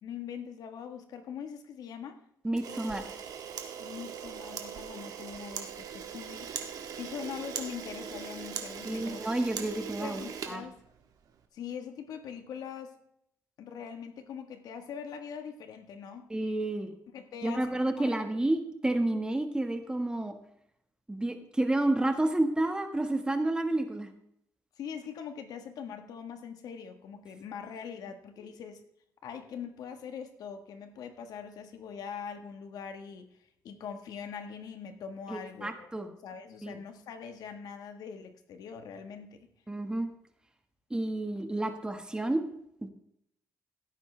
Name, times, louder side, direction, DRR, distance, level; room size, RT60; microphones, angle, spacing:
voice 1, 0.0-2.2 3.8-6.5 6.9-9.2 10.0-10.8 11.5-13.0 13.6-16.3 17.1-17.7 18.0-18.1 24.8-28.8 29.2-33.4 33.6-35.9 36.2-39.5, left 7 dB, 75° left, 7 dB, 1.5 m, -42 dB
voice 2, 2.4-3.0 8.8-10.6 16.3-16.9 17.4-20.3 21.1-24.1 35.3-36.1 36.6-36.8 39.7-40.1 40.9-42.4 42.8-42.9, right 1 dB, 15° right, 6 dB, 1.6 m, -30 dB
Camera, 2.5-11.3, right 7 dB, 70° right, 1.7 m, -40 dB
16.5 x 9.0 x 3.4 m, 0.73 s
cardioid pair, 100°, 7 cm